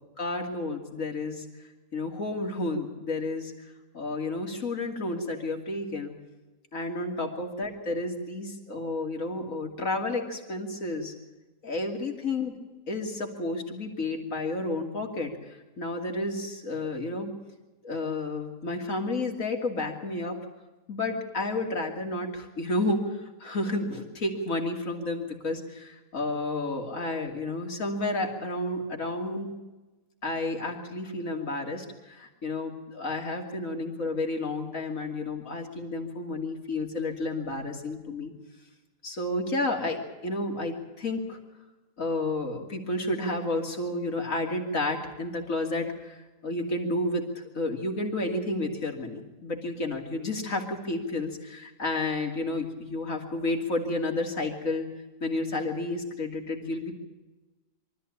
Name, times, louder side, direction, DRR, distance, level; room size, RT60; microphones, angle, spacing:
voice 1, 0.2-1.5 1.9-3.5 3.9-6.1 6.7-11.1 11.6-12.5 12.9-17.3 17.8-20.4 20.9-29.5 30.2-38.3 39.0-41.4 42.0-46.2 46.4-54.9 55.2-56.9, left 2 dB, 80° left, 2 dB, 3.2 m, -31 dB
24.5 x 14.0 x 8.7 m, 1.1 s
omnidirectional pair, 1.4 m